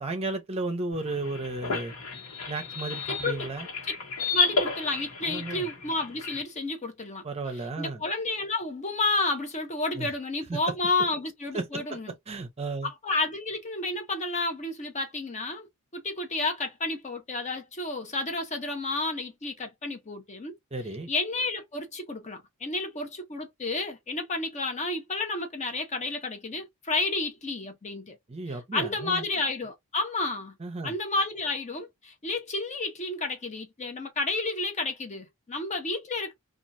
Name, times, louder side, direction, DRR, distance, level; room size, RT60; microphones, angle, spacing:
voice 1, 0.0-1.9 2.5-3.7 5.3-5.7 7.2-8.0 10.0-10.1 10.5-10.7 11.5-12.0 12.3-12.9 20.7-21.1 28.3-29.3 30.6-30.9, right 3 dB, 30° right, 0.6 m, -33 dB
sound 1, 0.9-6.4, left 4 dB, 75° left, 1.2 m, -32 dB
voice 2, 3.1-3.5 3.9-4.0 4.3-7.2 7.8-12.1 12.8-15.7 15.9-20.5 21.1-28.2 28.7-30.5 30.8-36.3, left 2 dB, 30° left, 0.8 m, -31 dB
2.9 x 2.4 x 2.6 m
head